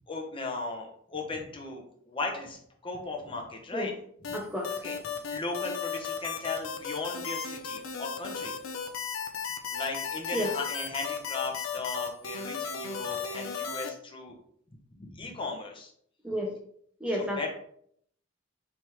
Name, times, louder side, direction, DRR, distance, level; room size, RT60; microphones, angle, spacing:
voice 1, 0.1-3.9 4.8-8.5 9.7-14.4 15.0-15.9 17.1-17.5, left 3 dB, 25° left, 1 dB, 0.8 m, -37 dB
sound 1, 4.2-13.9, left 6 dB, 80° left, 0.6 m, -35 dB
voice 2, 4.3-4.7 10.3-10.5 16.2-16.5 17.0-17.5, equal, 5° right, -1 dB, 0.5 m, -31 dB
4.4 x 3.5 x 3.0 m, 0.66 s
head